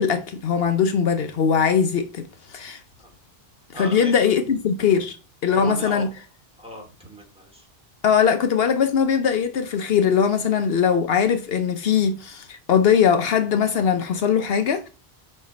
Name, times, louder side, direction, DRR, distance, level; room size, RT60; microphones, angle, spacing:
voice 1, 0.0-2.3 2.5-2.8 3.8-5.2 5.4-6.1 8.0-14.9, left 7 dB, 75° left, 0.9 m, -20 dB
voice 2, 3.7-4.1 5.5-6.0 6.6-7.6, equal, 5° right, 2.5 m, -35 dB
5.6 x 5.4 x 4.1 m
omnidirectional pair, 1.0 m